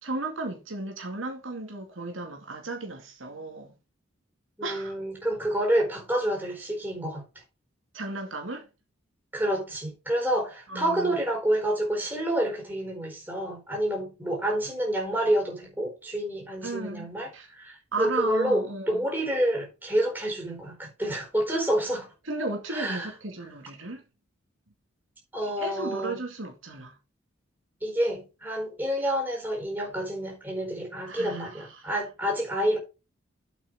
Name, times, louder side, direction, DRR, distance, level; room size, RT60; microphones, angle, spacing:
voice 1, 0.0-3.7 4.6-4.9 7.9-8.7 10.7-11.2 16.6-17.5 17.9-19.1 22.2-24.0 25.6-27.0 31.1-31.9, right 2 dB, 70° right, 2.3 m, -35 dB
voice 2, 4.6-7.2 9.3-22.1 22.7-23.1 25.3-26.2 27.8-32.8, right 1 dB, 10° right, 4.4 m, -28 dB
8.1 x 6.1 x 4.8 m
head